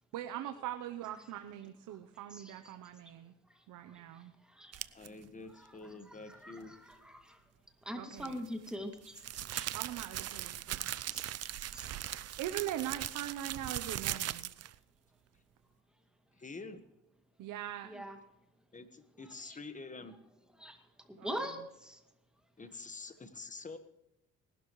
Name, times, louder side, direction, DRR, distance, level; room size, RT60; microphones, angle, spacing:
voice 1, 0.1-3.3 3.7-4.3 7.9-8.4 9.7-10.9 12.2-14.5 17.4-18.1 21.2-21.5, right 12 dB, 85° right, 8 dB, 0.9 m, -41 dB
sound 1, 4.7-5.1 8.2-14.8, right 12 dB, 55° right, 0.6 m, -39 dB
voice 2, 4.9-6.7 16.3-16.8 18.7-20.2 22.6-23.8, left 3 dB, 25° left, 9 dB, 1.5 m, -47 dB
voice 3, 6.3-7.4 7.8-9.1 9.5-9.7 11.1-11.2 11.7-11.9 17.8-18.2 20.6-20.8 21.1-22.0, equal, 5° right, 4 dB, 2.3 m, -42 dB
19.5 x 12.0 x 3.2 m, 0.85 s
cardioid pair, 90°, 30 cm